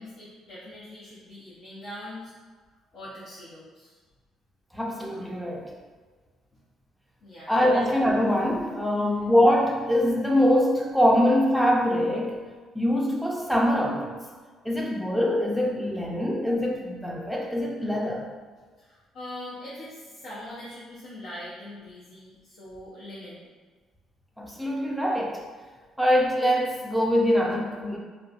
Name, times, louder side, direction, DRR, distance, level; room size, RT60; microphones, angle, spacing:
voice 1, 0.0-2.3 2.9-3.9 7.2-7.8 8.9-9.1 18.8-23.4, left 1 dB, 65° left, -11 dB, 0.7 m, -42 dB
voice 2, 4.7-5.7 7.5-12.4 12.7-14.2 14.6-18.3 24.4-25.4 26.0-28.0, equal, ahead, -1 dB, 0.5 m, -23 dB
3.0 x 2.2 x 2.4 m, 1.4 s
cardioid pair, 90°, 0 cm